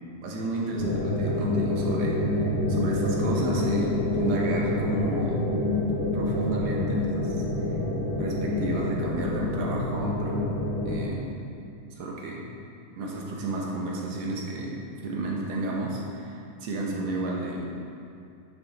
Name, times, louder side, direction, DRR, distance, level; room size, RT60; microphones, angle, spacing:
voice 1, 0.2-5.4 6.1-7.4 8.2-10.4 10.9-11.3 12.0-12.4 13.0-17.6, right 2 dB, 65° right, -2 dB, 2.2 m, -32 dB
sound 1, 0.8-11.1, left 2 dB, 45° left, 2.7 m, -27 dB
9.9 x 7.8 x 4.2 m, 2.5 s
omnidirectional pair, 3.7 m